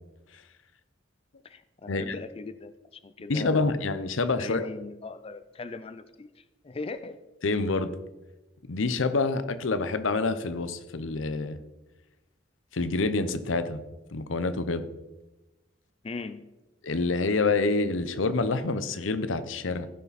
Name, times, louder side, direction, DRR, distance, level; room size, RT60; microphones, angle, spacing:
voice 1, 1.4-3.8 4.4-7.2 16.0-16.4, left 3 dB, 30° left, 12 dB, 0.4 m, -39 dB
voice 2, 3.3-4.7 7.4-7.9 8.7-11.6 12.7-13.8 14.1-14.9 16.8-19.9, left 3 dB, 90° left, 12 dB, 0.7 m, -27 dB
15.5 x 5.8 x 4.1 m, 1.1 s
head